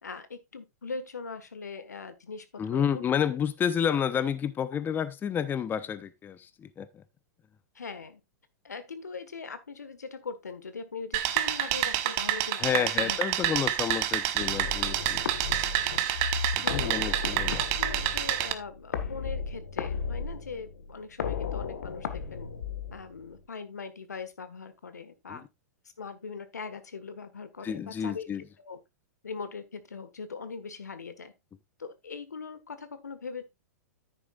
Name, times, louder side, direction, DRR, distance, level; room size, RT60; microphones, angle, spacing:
voice 1, 0.0-3.0 7.7-8.2 8.6-13.5 16.6-17.0 17.6-22.5 22.9-25.5 26.0-28.3 28.6-28.8 29.2-31.3 31.8-33.4, left 5 dB, 85° left, 1.5 m, -41 dB
voice 2, 2.6-7.0 12.5-15.2 16.7-17.6 25.3-25.4 27.6-28.4, left 8 dB, 20° left, 0.8 m, -30 dB
sound 1, 11.1-18.5, right 13 dB, 45° right, 1.2 m, -28 dB
sound 2, 14.4-23.4, left 6 dB, 70° left, 1.5 m, -35 dB
10.0 x 9.4 x 2.4 m
hypercardioid pair, 105°, 9 cm